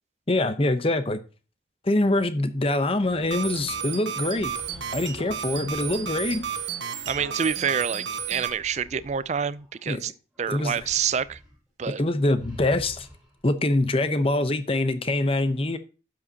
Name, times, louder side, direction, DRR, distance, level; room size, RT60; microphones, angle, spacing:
voice 1, 0.3-1.2 1.8-4.5 4.9-6.4 9.9-10.0 10.5-10.9 12.0-13.1 13.4-15.8, left 2 dB, 30° left, 0.8 m, -24 dB
sound 1, 2.7-9.9 10.3-11.6 11.8-12.0 12.4-13.5, equal, 5° right, 5.0 m, -48 dB
sound 2, 3.2-8.5, right 7 dB, 75° right, 1.4 m, -33 dB
voice 2, 7.1-10.1 10.4-11.4 11.8-12.0, right 7 dB, 35° right, 0.3 m, -27 dB
12.0 x 8.7 x 2.8 m
head